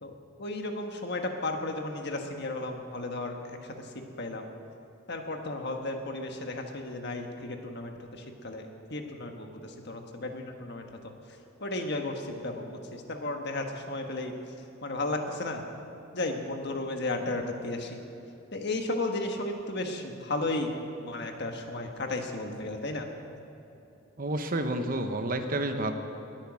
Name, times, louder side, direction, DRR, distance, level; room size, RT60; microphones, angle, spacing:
voice 1, 0.0-3.9 4.2-4.4 5.1-11.1 11.6-14.3 14.8-15.6 16.1-18.0 18.5-20.7 21.0-23.1, left 2 dB, 55° left, 4 dB, 1.5 m, -34 dB
voice 2, 24.2-25.9, right 1 dB, 45° right, 6 dB, 1.0 m, -30 dB
20.5 x 9.1 x 6.3 m, 3.0 s
head